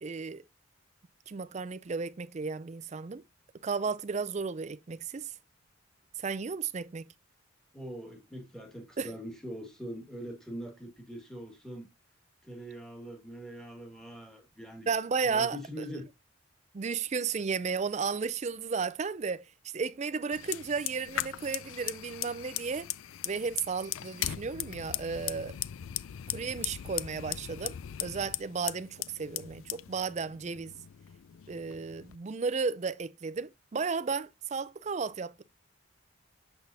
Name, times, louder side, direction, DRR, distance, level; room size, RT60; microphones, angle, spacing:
voice 1, 0.0-0.4 1.3-3.2 3.6-5.3 6.2-7.1 9.0-9.1 14.9-16.0 16.7-19.5 19.7-22.9 23.2-25.6 26.3-27.8 28.0-30.7 31.5-35.4, right 5 dB, 35° right, 0.4 m, -34 dB
voice 2, 7.7-11.9 12.4-14.9 15.2-16.1, equal, 5° left, 1.8 m, -43 dB
Fire, 20.3-32.2, left 13 dB, 75° left, 0.4 m, -39 dB
6.8 x 6.1 x 2.6 m
head